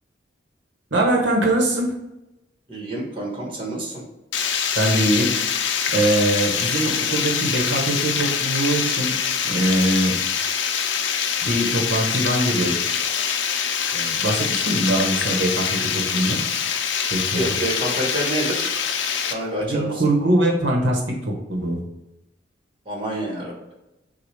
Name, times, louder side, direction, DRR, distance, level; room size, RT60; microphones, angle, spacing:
voice 1, 0.9-1.9 4.8-5.3 5.9-9.1 9.4-10.1 11.4-12.8 13.9-15.6 15.9-16.4 17.1-17.4 19.6-21.8, right 1 dB, 80° right, 0 dB, 1.0 m, -22 dB
voice 2, 2.7-4.0 17.3-18.8 19.3-20.0 22.8-23.5, right 1 dB, 30° right, -2 dB, 1.3 m, -27 dB
Water, 4.3-19.3, left 7 dB, 85° left, 0.5 m, -24 dB
6.1 x 2.3 x 3.3 m, 0.96 s
head